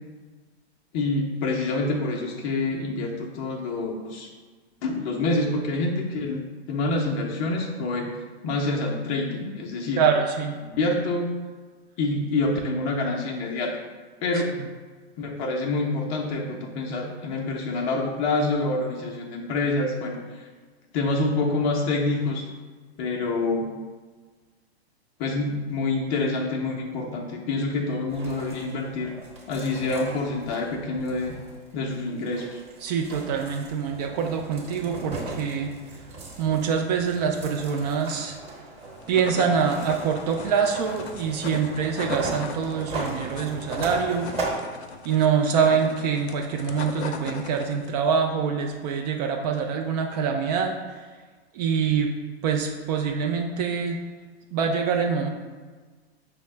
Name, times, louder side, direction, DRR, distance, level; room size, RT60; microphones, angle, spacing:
voice 1, 0.9-4.3 4.8-6.4 6.7-8.2 8.4-10.0 10.7-11.3 12.0-13.8 14.2-14.6 15.2-20.5 20.9-22.5 23.0-23.8 25.2-29.1 29.5-31.3 31.7-32.6, left 2 dB, 35° left, -1 dB, 0.5 m, -27 dB
voice 2, 10.0-10.6 32.8-35.7 36.4-38.4 39.1-44.3 45.0-51.1 51.5-52.1 52.4-54.0 54.5-55.3, right 6 dB, 40° right, 3 dB, 0.4 m, -25 dB
sound 1, 28.1-44.6, right 2 dB, 20° right, 1.1 m, -38 dB
sound 2, 38.8-47.9, left 5 dB, 90° left, 0.5 m, -38 dB
5.7 x 2.1 x 3.2 m, 1.4 s
hypercardioid pair, 115°, 32 cm